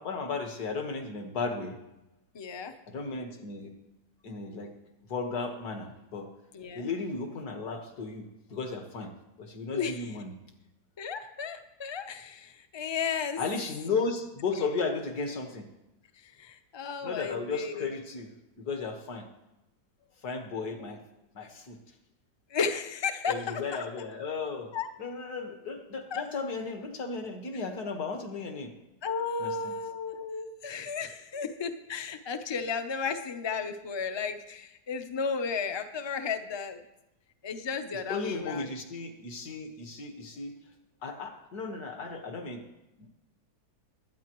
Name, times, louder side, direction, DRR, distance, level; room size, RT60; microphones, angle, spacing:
voice 1, 0.0-1.8 2.9-3.7 4.2-4.7 5.1-6.3 6.8-9.1 9.4-10.3 13.4-15.7 17.0-18.3 18.6-19.3 20.2-21.0 21.3-21.8 23.3-24.7 25.0-28.7 29.4-29.7 37.9-40.6 41.0-42.6 43.0-43.1, left 4 dB, 70° left, 4 dB, 2.0 m, -35 dB
voice 2, 2.3-2.7 6.5-6.9 9.7-10.1 11.0-13.4 16.2-17.9 20.8-20.9 22.5-23.9 24.7-24.9 26.1-26.2 29.0-36.8 37.4-38.7, left 5 dB, 40° left, 8 dB, 0.3 m, -34 dB
21.0 x 9.4 x 3.1 m, 0.94 s
omnidirectional pair, 1.7 m